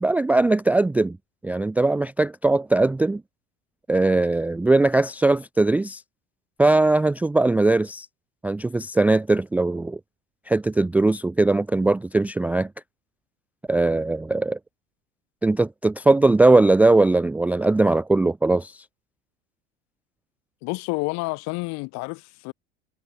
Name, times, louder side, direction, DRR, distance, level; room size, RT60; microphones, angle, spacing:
voice 1, 0.0-1.2 1.4-3.2 3.9-6.0 6.6-8.1 8.4-10.0 10.5-12.7 13.7-14.6 15.4-18.7, right 2 dB, 5° right, 0.4 m, -20 dB
voice 2, 20.6-22.5, left 26 dB, 55° left, 6.5 m, -29 dB
figure-of-eight pair, 75°, 33 cm